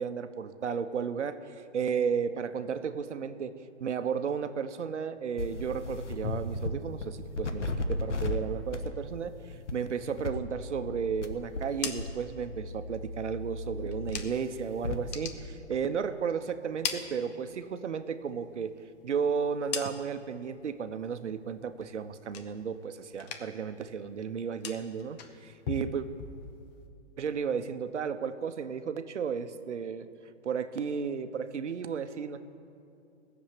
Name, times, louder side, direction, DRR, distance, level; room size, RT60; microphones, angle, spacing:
voice 1, 0.0-3.5 3.8-9.4 9.7-18.7 19.0-26.1 27.2-30.1 30.4-32.4, right 6 dB, 80° right, 10 dB, 0.9 m, -33 dB
sound 1, 5.4-6.7 7.0-8.4 8.7-9.0 9.5-9.7 10.2-11.7 12.0-15.0, left 2 dB, 80° left, 1.3 m, -35 dB
sound 2, 11.5-14.6 14.9-16.2 16.5-17.9 18.2-20.4 20.7-21.2 21.5-22.9 23.1-23.7 24.0-26.8, left 6 dB, 35° left, 1.1 m, -41 dB
16.0 x 7.2 x 8.7 m, 2.6 s
hypercardioid pair, 135°, 35 cm